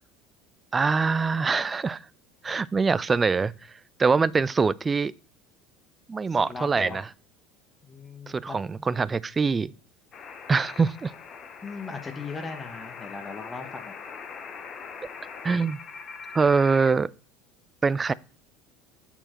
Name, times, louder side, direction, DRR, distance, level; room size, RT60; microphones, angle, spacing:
voice 1, 0.7-2.1 2.4-3.5 4.0-5.1 6.1-7.1 8.3-9.7 10.5-11.1 15.4-15.8 16.3-17.1 17.8-18.1, right 4 dB, 20° right, 0.3 m, -23 dB
voice 2, 6.3-7.0 7.8-8.6 11.6-13.9, left 4 dB, 20° left, 1.1 m, -38 dB
sound 1, 10.1-16.9, left 5 dB, 35° left, 0.8 m, -41 dB
7.2 x 4.4 x 4.3 m
figure-of-eight pair, 70°, 0 cm